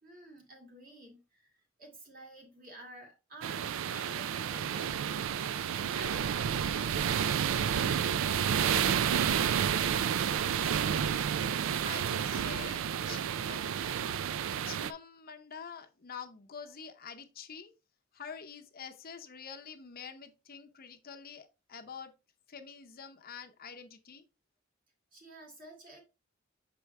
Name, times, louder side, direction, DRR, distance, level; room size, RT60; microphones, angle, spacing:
voice 1, 0.0-11.2 25.1-26.0, right 1 dB, 45° right, 2.3 m, -52 dB
sound 1, 3.4-14.9, right 8 dB, 65° right, 0.4 m, -30 dB
voice 2, 11.7-13.7 14.7-17.7 18.1-22.1 22.5-24.2, left 6 dB, 45° left, 0.7 m, -46 dB
6.8 x 4.7 x 3.2 m
head